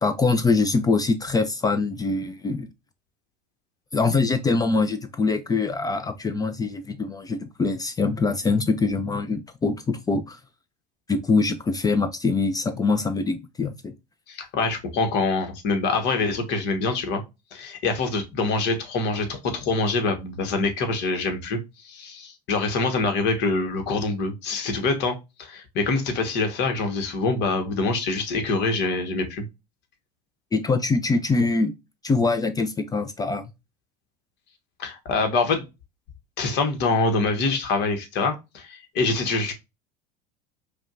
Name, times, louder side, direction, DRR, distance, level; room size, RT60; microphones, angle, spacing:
voice 1, 0.0-2.7 3.9-10.4 11.1-13.9 30.5-31.7 32.0-33.5, left 3 dB, 20° left, 0.4 m, -23 dB
voice 2, 14.3-17.2 17.5-21.6 21.8-29.4 34.8-35.7 36.4-39.5, left 3 dB, 55° left, 1.1 m, -25 dB
4.9 x 2.3 x 2.4 m
hypercardioid pair, 80°, 21 cm